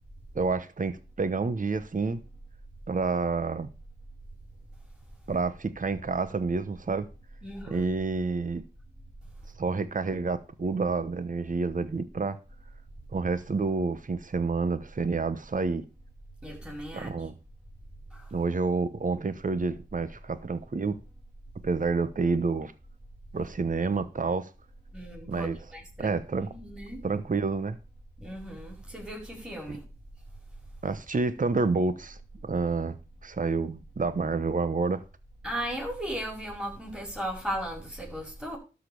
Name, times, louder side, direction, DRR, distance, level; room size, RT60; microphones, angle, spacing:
voice 1, 0.3-2.2 2.9-3.7 5.3-7.1 7.7-8.6 9.6-12.4 13.1-15.8 16.9-17.4 18.3-21.0 21.6-22.7 23.3-24.5 25.3-25.6 26.0-26.5 27.0-27.8 29.7-29.8 30.8-32.2 32.4-33.0 33.2-35.0, right 4 dB, 45° right, 1.0 m, -29 dB
voice 2, 7.4-7.9 16.4-17.1 18.1-18.2 24.9-27.0 28.2-29.8 35.4-38.6, equal, 5° right, 5.0 m, -36 dB
12.5 x 5.1 x 6.8 m
cardioid pair, 60°, 19 cm